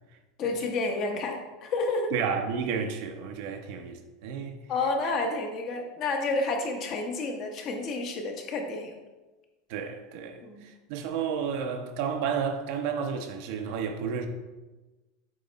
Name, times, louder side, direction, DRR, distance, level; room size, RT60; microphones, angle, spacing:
voice 1, 0.4-2.1 4.7-8.9 10.4-10.6, left 3 dB, 35° left, 0.9 m, -30 dB
voice 2, 2.1-4.6 5.0-5.1 9.7-14.3, right 6 dB, 60° right, 0.7 m, -32 dB
7.6 x 3.1 x 4.1 m
supercardioid pair, 155°, 0 cm